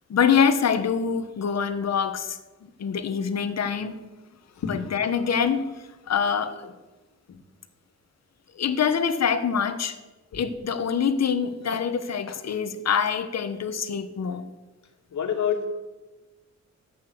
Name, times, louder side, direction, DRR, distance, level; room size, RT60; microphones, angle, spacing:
voice 1, 0.1-2.4 2.8-3.9 4.7-5.7 6.1-6.7 8.5-10.0 10.3-14.4, left 7 dB, 60° left, 10 dB, 1.3 m, -25 dB
voice 2, 4.6-4.9 7.3-7.4 10.3-10.4 15.1-15.7, left 7 dB, 80° left, 4 dB, 2.2 m, -28 dB
14.0 x 8.6 x 7.9 m, 1.2 s
wide cardioid pair, 140°, 29 cm